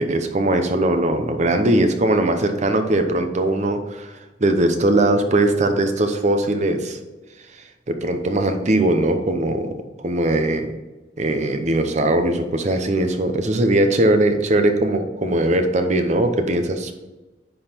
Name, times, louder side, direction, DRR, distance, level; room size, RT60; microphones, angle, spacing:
voice 1, 0.0-4.1 4.4-7.0 7.9-10.7 11.2-16.9, right 1 dB, 40° right, 7 dB, 0.8 m, -20 dB
10.5 x 4.0 x 4.4 m, 1.1 s
head